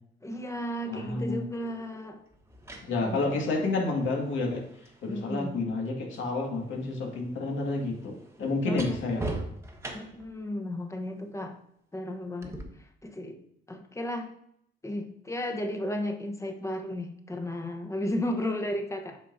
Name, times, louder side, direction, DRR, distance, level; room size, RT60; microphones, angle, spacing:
voice 1, 0.2-2.2 3.0-3.4 5.1-5.6 8.6-9.0 9.9-11.6 11.9-13.4 13.7-14.3 14.8-19.2, left 1 dB, 15° left, 4 dB, 1.0 m, -34 dB
voice 2, 0.9-1.5 2.8-4.6 5.0-9.3, left 3 dB, 75° left, 0 dB, 1.9 m, -30 dB
sound 1, 1.1-1.2 2.3-6.3 6.6-10.4 12.4-12.6, right 2 dB, 15° right, 1.3 m, -41 dB
8.5 x 5.6 x 2.7 m, 0.72 s
cardioid pair, 90°, 20 cm